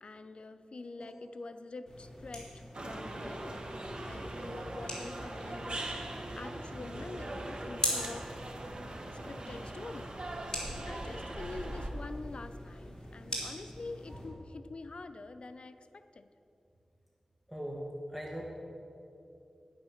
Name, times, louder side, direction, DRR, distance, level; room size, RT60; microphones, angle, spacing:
voice 1, 0.0-3.7 4.0-8.3 9.2-10.1 10.9-16.3, left 3 dB, 60° left, 10 dB, 0.5 m, -46 dB
sound 1, 1.9-14.3, left 1 dB, 30° left, 3.2 m, -42 dB
sound 2, 2.7-11.9, right 1 dB, 50° right, 1.2 m, -41 dB
voice 2, 17.5-17.8 18.1-18.4, equal, 5° right, -2 dB, 1.4 m, -41 dB
10.0 x 9.4 x 6.4 m, 2.7 s
wide cardioid pair, 90°, 2 cm